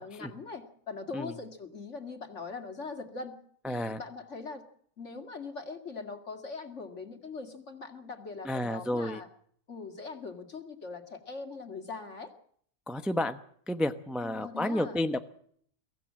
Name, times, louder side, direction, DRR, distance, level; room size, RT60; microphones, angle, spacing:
voice 1, 0.0-3.4 3.7-4.6 5.0-9.3 9.7-12.3 14.2-15.0, left 4 dB, 55° left, 5 dB, 2.6 m, -41 dB
voice 2, 3.6-4.0 8.4-9.2 12.9-13.4 13.7-15.2, left 1 dB, ahead, 8 dB, 0.7 m, -31 dB
23.5 x 16.0 x 7.5 m, 0.63 s
omnidirectional pair, 1.5 m